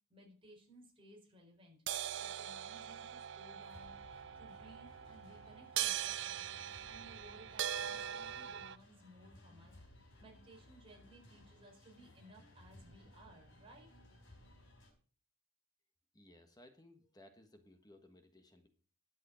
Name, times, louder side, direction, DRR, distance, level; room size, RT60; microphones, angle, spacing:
voice 1, 0.1-1.8 2.2-4.0 4.3-6.4 6.8-9.7 10.2-13.9, right 1 dB, 25° right, 1 dB, 4.4 m, -60 dB
sound 1, 1.9-8.8, right 10 dB, 55° right, 0.5 m, -41 dB
sound 2, 3.6-14.9, left 1 dB, 65° left, 4.5 m, -60 dB
voice 2, 16.1-18.7, left 1 dB, 20° left, 7 dB, 1.3 m, -61 dB
11.5 x 7.8 x 6.3 m, 0.42 s
head